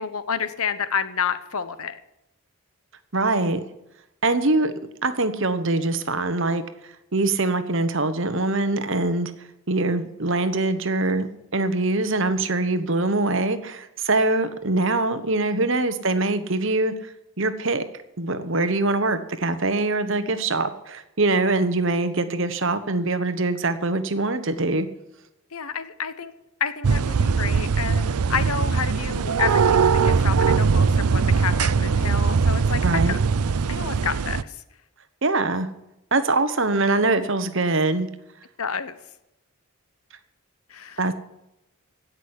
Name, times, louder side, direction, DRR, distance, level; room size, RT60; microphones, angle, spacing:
voice 1, 0.0-2.0 25.5-26.3 26.6-32.8 33.1-33.2 33.7-34.6 38.6-39.0 40.7-41.0, left 6 dB, 80° left, 13 dB, 1.1 m, -29 dB
voice 2, 3.1-3.6 4.2-4.7 5.0-6.6 7.1-9.3 9.7-11.3 11.5-16.9 17.4-17.8 18.2-24.9 32.8-33.2 35.2-35.7 36.1-38.1 41.0-41.1, right 2 dB, 60° right, 11 dB, 1.2 m, -23 dB
sound 1, 26.8-34.4, right 5 dB, 90° right, 0.5 m, -21 dB
16.5 x 6.2 x 9.8 m, 0.89 s
head